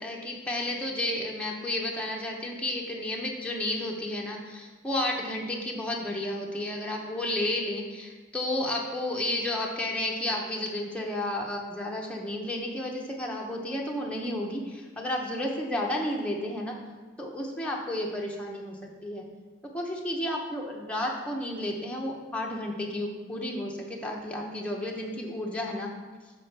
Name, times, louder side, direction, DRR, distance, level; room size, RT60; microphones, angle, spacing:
voice 1, 0.0-16.7 17.2-19.2 19.7-25.9, left 1 dB, 5° left, -1 dB, 0.8 m, -32 dB
7.0 x 4.4 x 5.8 m, 1.4 s
head